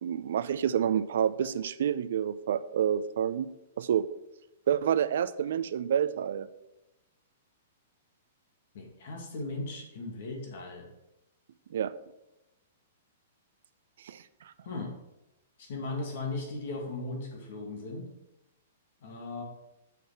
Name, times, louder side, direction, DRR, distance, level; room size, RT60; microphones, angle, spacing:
voice 1, 0.0-3.5 3.8-4.0 4.7-6.5 11.7-11.9 14.1-14.2, right 9 dB, 65° right, 14 dB, 0.5 m, -28 dB
voice 2, 8.7-10.9 14.6-15.0 15.6-18.1 19.0-19.4, left 2 dB, 60° left, 1 dB, 2.2 m, -37 dB
6.5 x 5.3 x 5.8 m, 0.93 s
hypercardioid pair, 115°, 0 cm